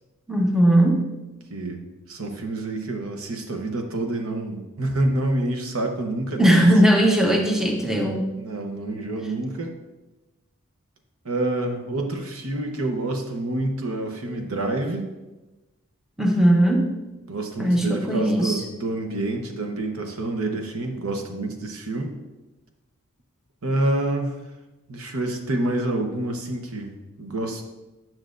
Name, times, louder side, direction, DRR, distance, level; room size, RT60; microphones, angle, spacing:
voice 1, 0.3-1.1 6.4-8.3 16.2-17.0 17.6-18.6, right 1 dB, ahead, 0 dB, 0.7 m, -19 dB
voice 2, 1.5-6.6 8.4-9.8 11.2-15.1 17.3-22.1 23.6-24.4 24.9-27.6, right 2 dB, 75° right, 4 dB, 0.9 m, -27 dB
9.8 x 6.0 x 2.5 m, 1.1 s
head